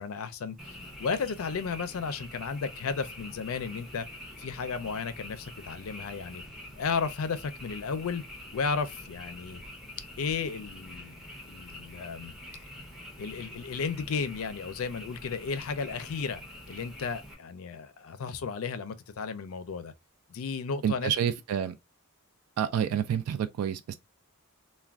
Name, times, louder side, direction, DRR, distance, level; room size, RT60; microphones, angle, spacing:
voice 1, 0.0-4.1 4.4-6.4 6.8-8.2 8.5-9.6 10.2-11.2 11.5-12.3 13.2-16.4 16.7-19.9 20.3-21.1, left 5 dB, 65° left, 0.4 m, -34 dB
Frog, 0.6-17.3, left 1 dB, ahead, 0.6 m, -46 dB
voice 2, 20.8-21.7 22.6-24.0, right 9 dB, 85° right, 0.3 m, -28 dB
2.4 x 2.2 x 3.3 m
head